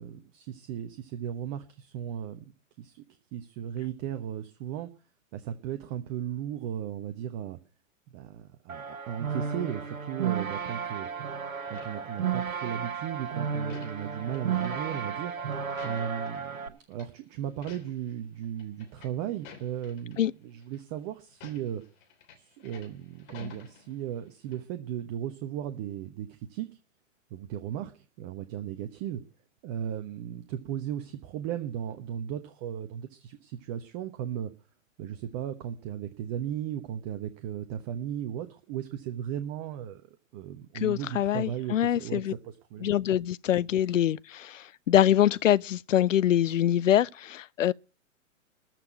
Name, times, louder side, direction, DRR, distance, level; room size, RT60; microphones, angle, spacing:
voice 1, 0.0-2.4 2.8-3.0 3.3-4.9 5.3-7.6 8.1-11.1 11.7-15.3 15.8-21.8 22.3-26.7 27.3-29.2 29.6-34.5 35.0-40.0 40.3-42.2 42.7-42.9, right 10 dB, 30° right, 1.1 m, -36 dB
sound 1, 8.7-16.7, right 7 dB, 80° right, 1.8 m, -33 dB
sound 2, 11.7-12.9 13.2-16.6 16.9-17.1 17.5-18.1 18.4-20.2 20.6-20.8 21.3-24.3 24.5-24.6, left 7 dB, 40° left, 3.3 m, -50 dB
voice 2, 40.7-42.3 42.8-47.7, left 11 dB, 70° left, 0.6 m, -24 dB
14.0 x 6.0 x 9.3 m
figure-of-eight pair, 120°, 40 cm